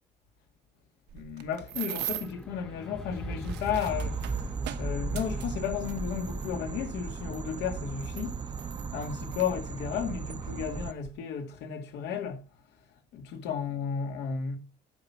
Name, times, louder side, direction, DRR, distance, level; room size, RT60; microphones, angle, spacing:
voice 1, 1.1-4.5 4.8-12.5 13.1-14.6, left 7 dB, 85° left, 2.3 m, -34 dB
sound 1, 1.1-2.4 3.2-6.5 7.3-7.4 8.0-9.5 10.3-10.4 10.8-11.1, right 13 dB, 80° right, 1.1 m, -40 dB
sound 2, 2.1-8.5 9.4-9.5, right 1 dB, 5° left, 0.9 m, -38 dB
sound 3, 3.8-10.9, right 5 dB, 25° right, 0.6 m, -37 dB
8.7 x 6.2 x 5.8 m
cardioid pair, 110°, 17 cm